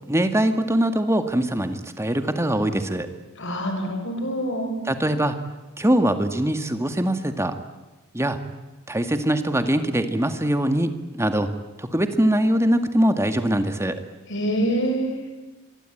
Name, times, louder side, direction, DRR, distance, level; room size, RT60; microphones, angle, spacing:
voice 1, 0.1-3.1 4.9-5.4 5.8-7.5 8.1-8.4 8.9-11.5 11.8-14.0, right 1 dB, 15° right, 8 dB, 1.9 m, -22 dB
voice 2, 3.4-4.7 14.3-15.2, right 1 dB, 60° left, 4 dB, 6.3 m, -25 dB
26.0 x 23.5 x 9.2 m, 1.2 s
head